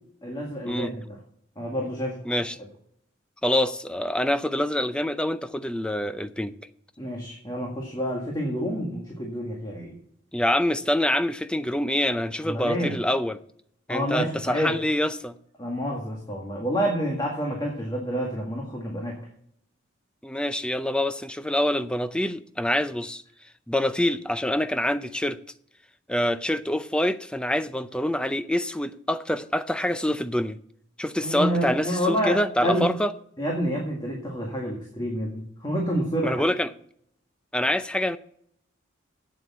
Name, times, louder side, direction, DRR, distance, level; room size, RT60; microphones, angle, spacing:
voice 1, 0.2-1.2 1.6-2.4 7.0-10.0 12.4-12.9 13.9-14.7 15.6-19.3 31.2-32.9 33.4-36.5, equal, 20° left, 1.8 m, -28 dB
voice 2, 2.3-2.6 3.4-6.6 10.3-13.4 13.9-15.3 20.2-23.2 23.7-25.4 26.1-30.6 31.0-33.1 36.2-36.7 37.5-38.2, left 1 dB, 5° left, 0.4 m, -26 dB
8.5 x 7.9 x 7.2 m
head